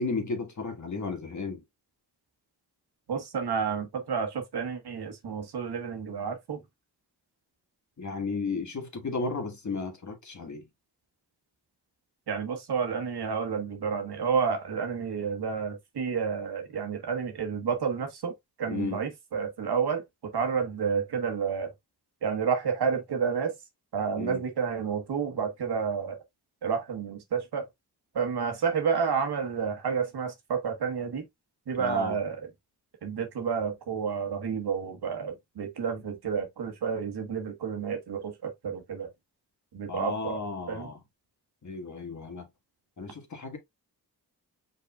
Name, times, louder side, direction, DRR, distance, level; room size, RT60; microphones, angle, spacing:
voice 1, 0.0-1.6 8.0-10.7 18.7-19.0 24.2-24.4 31.8-32.2 39.9-41.0 41.6-42.5 43.0-43.6, left 4 dB, 45° left, 1.6 m, -34 dB
voice 2, 3.1-6.6 12.3-18.3 18.6-20.0 20.3-21.7 22.2-23.5 23.9-26.2 26.6-27.6 28.1-31.2 31.7-32.4 33.0-39.1 39.7-40.4 40.7-40.9, right 6 dB, 75° right, 1.3 m, -30 dB
5.3 x 4.1 x 2.3 m
cardioid pair, 65°, 40 cm